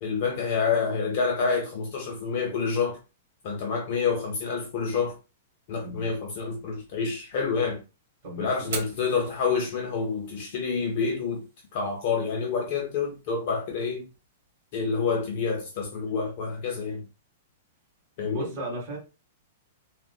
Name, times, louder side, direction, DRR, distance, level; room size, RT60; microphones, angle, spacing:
voice 1, 0.0-3.0 3.4-5.2 5.7-7.8 8.4-11.4 11.7-14.1 14.7-17.0 18.2-18.5, left 5 dB, 35° left, 0.5 m, -28 dB
voice 2, 5.8-6.1 8.2-8.7 18.2-19.0, right 1 dB, 25° right, 1.6 m, -36 dB
Fire, 8.6-16.6, right 4 dB, 50° right, 1.3 m, -46 dB
3.6 x 2.1 x 2.3 m
supercardioid pair, 180°, 0 cm